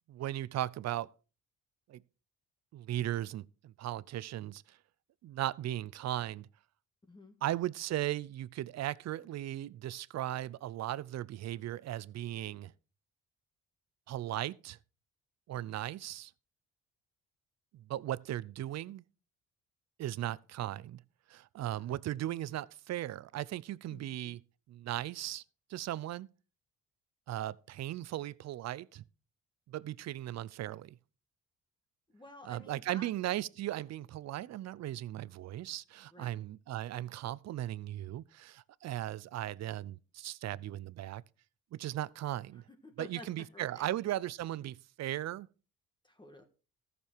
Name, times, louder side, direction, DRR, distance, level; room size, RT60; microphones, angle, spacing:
voice 1, 0.1-1.1 1.9-2.0 2.7-4.8 5.2-6.5 7.4-12.7 14.1-14.8 15.5-16.3 17.7-19.0 20.0-21.0 21.3-24.4 24.7-25.4 25.7-26.3 27.3-29.0 29.7-31.0 32.4-41.2 41.7-42.6 43.0-45.5, right 13 dB, 60° right, 0.5 m, -37 dB
voice 2, 21.6-21.9 23.9-24.4 32.1-33.1 36.1-36.4 42.5-43.9 46.0-46.4, left 2 dB, 15° left, 1.6 m, -52 dB
14.0 x 6.8 x 4.5 m
cardioid pair, 90°, 30 cm